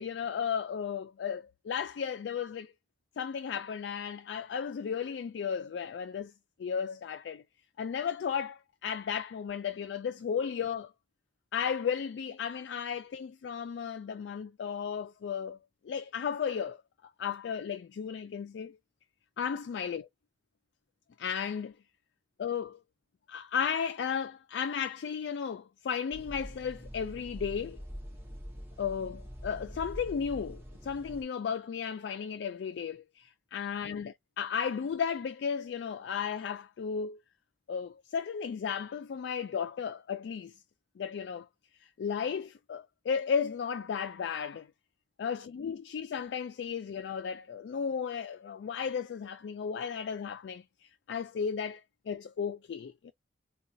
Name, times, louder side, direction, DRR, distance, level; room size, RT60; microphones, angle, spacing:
voice 1, 0.0-2.7 3.2-6.3 6.6-7.4 7.8-10.9 11.5-15.6 15.8-16.8 17.2-18.8 19.4-20.1 21.2-21.7 22.4-22.8 23.3-27.8 28.8-37.2 37.7-40.5 41.0-41.5 42.0-44.7 45.2-53.1, left 7 dB, 80° left, 0.3 m, -34 dB
sound 1, 26.1-31.2, equal, 10° right, 0.8 m, -44 dB
3.9 x 2.3 x 2.6 m
head